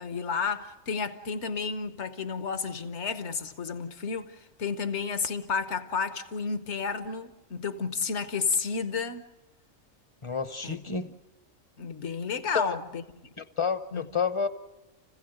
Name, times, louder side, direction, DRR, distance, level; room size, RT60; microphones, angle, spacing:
voice 1, 0.0-9.2 10.6-10.8 11.8-13.0 13.9-14.0, left 5 dB, 60° left, 1.3 m, -31 dB
voice 2, 10.2-11.1 12.5-12.8 13.4-14.5, left 5 dB, 25° left, 0.8 m, -29 dB
29.5 x 16.0 x 7.9 m
omnidirectional pair, 1.4 m